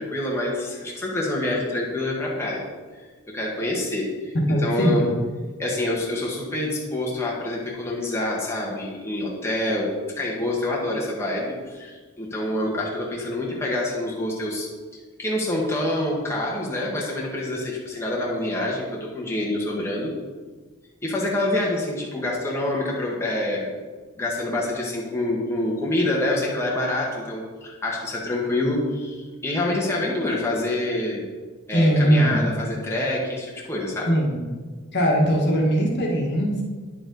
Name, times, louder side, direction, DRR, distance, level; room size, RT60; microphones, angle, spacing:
voice 1, 0.0-2.7 3.2-4.3 4.6-5.1 5.6-14.7 15.2-20.1 21.0-23.7 24.2-31.3 31.7-34.1, left 1 dB, 10° left, -4 dB, 1.4 m, -26 dB
voice 2, 4.5-5.1 31.7-32.5 34.1-34.4 34.9-36.6, equal, 50° left, -1 dB, 1.6 m, -20 dB
9.9 x 7.0 x 3.9 m, 1.4 s
head